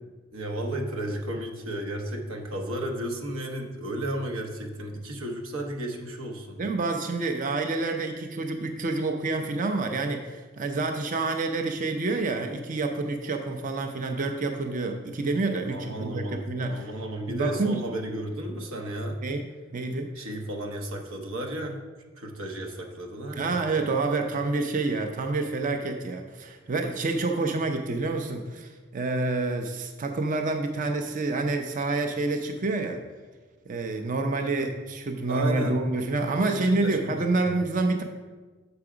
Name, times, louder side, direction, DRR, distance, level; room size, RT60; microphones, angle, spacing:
voice 1, 0.3-6.6 15.7-19.2 20.2-21.8 22.2-23.6 35.3-35.8 36.5-37.4, right 1 dB, 85° right, 2 dB, 0.9 m, -33 dB
voice 2, 6.6-16.9 17.3-17.8 19.2-19.5 19.7-20.1 23.3-33.0 33.7-38.0, right 3 dB, 40° right, 5 dB, 0.5 m, -28 dB
6.9 x 4.7 x 4.9 m, 1.3 s
head